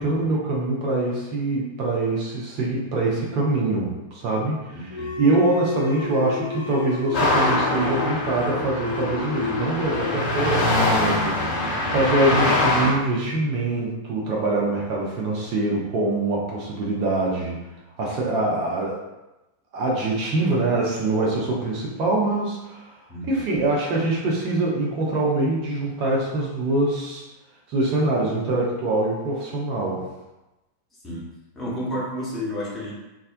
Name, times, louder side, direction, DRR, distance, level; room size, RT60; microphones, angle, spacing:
voice 1, 0.0-17.6 18.0-19.0 19.7-27.2 27.7-30.0, right 2 dB, 40° right, -3 dB, 0.5 m, -24 dB
voice 2, 4.7-5.2 23.1-23.4 31.0-31.3 31.5-32.9, equal, 15° left, -7 dB, 0.9 m, -31 dB
sound 1, 4.9-12.1, left 5 dB, 65° left, 0.3 m, -33 dB
sound 2, 7.1-12.9, left 1 dB, 40° left, 0.9 m, -23 dB
2.3 x 2.1 x 2.5 m, 1.0 s
figure-of-eight pair, 90°, 0 cm